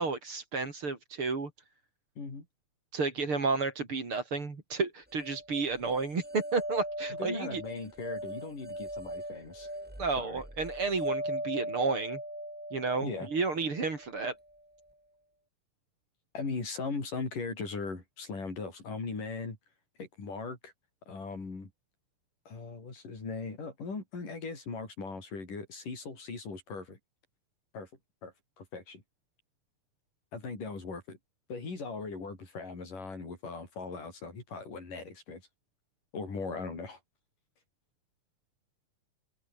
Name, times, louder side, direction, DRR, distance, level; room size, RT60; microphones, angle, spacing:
voice 1, 0.0-1.5 2.9-7.6 10.0-12.2 12.7-14.3, right 4 dB, 40° right, 4.7 m, -32 dB
sound 1, 5.2-14.3, right 1 dB, 5° right, 1.7 m, -39 dB
voice 2, 7.2-9.7 10.2-10.4 13.0-13.3 16.3-19.6 20.0-20.7 21.1-21.7 22.5-27.0 27.7-27.9 28.2-29.0 30.3-31.2 31.5-35.4 36.1-37.0, left 4 dB, 70° left, 8.2 m, -39 dB
open air
omnidirectional pair, 3.9 m